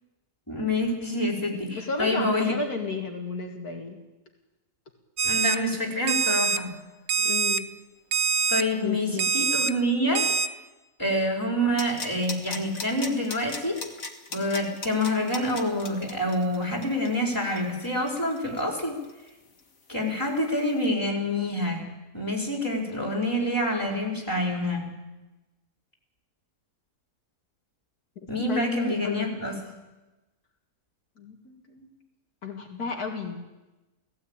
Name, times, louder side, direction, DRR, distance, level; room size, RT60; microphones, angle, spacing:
voice 1, 0.5-2.5 5.2-6.7 8.5-10.3 11.0-13.8 14.3-19.0 19.9-21.8 22.1-24.9 28.3-29.6, left 1 dB, 10° left, -1 dB, 4.3 m, -27 dB
voice 2, 1.8-4.0 7.2-7.7 8.8-9.3 28.5-29.4 31.2-31.9 32.4-33.4, left 4 dB, 75° left, 2 dB, 2.5 m, -33 dB
Alarm, 5.2-5.6 6.1-6.6 7.1-7.6 8.1-8.6 9.2-9.7 10.2-10.5, right 6 dB, 70° right, 1.3 m, -24 dB
sound 1, 11.8-19.3 19.6-19.7, left 4 dB, 60° left, 2.1 m, -37 dB
18.0 x 16.5 x 8.8 m, 1.1 s
omnidirectional pair, 1.6 m